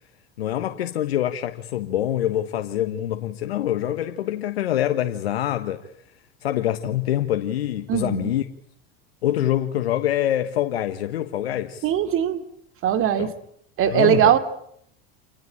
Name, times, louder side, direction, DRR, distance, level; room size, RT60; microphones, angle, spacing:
voice 1, 0.4-5.9 6.4-8.5 9.2-11.9 13.2-13.3 13.9-14.3, left 12 dB, 90° left, 1.4 m, -25 dB
voice 2, 7.9-8.3 11.8-12.4 12.8-13.3 13.8-14.4, right 10 dB, 45° right, 2.6 m, -20 dB
27.0 x 20.0 x 8.7 m
hypercardioid pair, 100°, 30 cm